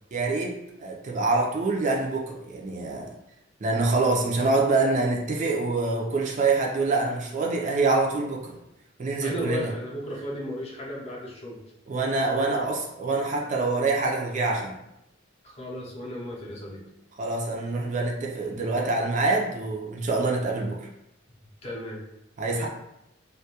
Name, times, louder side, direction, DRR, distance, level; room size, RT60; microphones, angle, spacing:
voice 1, 0.1-0.5 0.8-3.1 3.6-8.6 9.0-9.7 11.9-14.8 17.2-20.9 22.4-22.7, right 3 dB, 40° right, -1 dB, 0.4 m, -25 dB
voice 2, 9.2-11.6 12.5-12.7 15.4-16.8 18.5-18.6 21.3-21.4 21.6-22.1 22.5-22.7, left 1 dB, 35° left, -3 dB, 0.5 m, -35 dB
2.2 x 2.1 x 2.7 m, 0.86 s
head